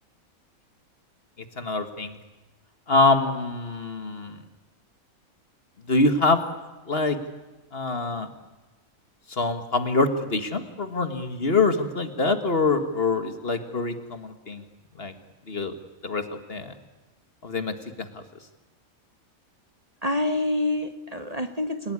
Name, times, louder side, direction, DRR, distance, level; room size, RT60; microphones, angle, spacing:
voice 1, 1.6-2.2 2.9-4.4 5.9-6.4 6.9-7.2 7.7-8.3 9.3-14.6 15.0-15.1 15.5-15.7 16.0-16.7 17.4-18.2, left 3 dB, 45° left, 8 dB, 1.9 m, -25 dB
voice 2, 20.0-21.9, left 1 dB, 30° right, 7 dB, 1.3 m, -27 dB
28.0 x 17.5 x 9.8 m, 1.1 s
omnidirectional pair, 1.4 m